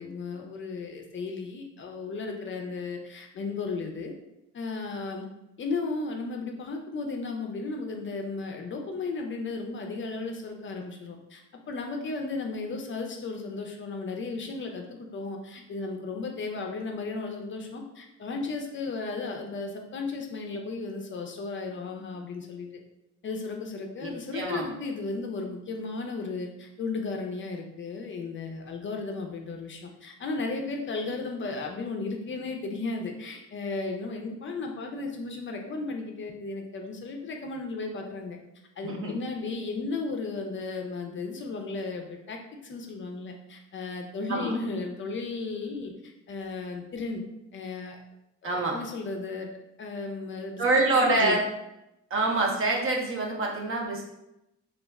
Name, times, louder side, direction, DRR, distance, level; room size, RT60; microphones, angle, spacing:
voice 1, 0.0-4.1 4.5-5.3 5.6-22.7 23.2-38.4 38.8-47.2 47.5-48.0 48.4-49.5 49.8-50.6 50.9-51.4, left 3 dB, 40° left, 3 dB, 0.4 m, -35 dB
voice 2, 24.0-24.7 38.8-39.2 44.3-44.5 48.4-48.8 50.6-51.4 52.1-54.0, right 2 dB, 45° right, 0 dB, 0.6 m, -26 dB
2.4 x 2.0 x 3.4 m, 0.89 s
cardioid pair, 90°, 30 cm